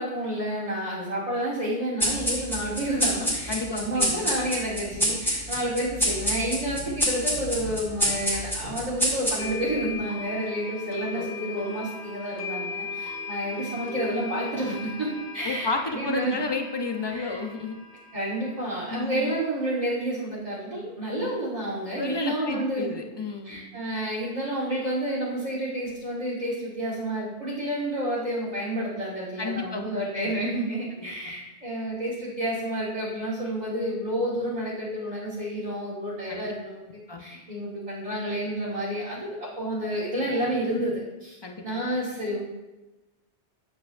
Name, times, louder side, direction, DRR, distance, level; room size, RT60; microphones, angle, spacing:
voice 1, 0.0-16.4 17.1-17.4 18.1-22.9 23.4-36.8 37.2-41.4 41.6-42.4, right 1 dB, 35° right, -9 dB, 1.5 m, -30 dB
sound 1, 2.0-9.7, equal, ahead, 1.9 m, -28 dB
voice 2, 3.5-4.3 11.1-11.3 15.4-17.8 18.9-19.3 22.0-23.6 29.4-29.8 30.2-30.3 30.9-31.1 36.3-36.5 37.1-37.2 41.4-41.6, left 3 dB, 30° left, 4 dB, 0.5 m, -32 dB
sound 2, 8.3-8.4 9.4-19.4, left 4 dB, 70° left, 1.2 m, -38 dB
8.1 x 7.8 x 2.5 m, 1.1 s
omnidirectional pair, 1.2 m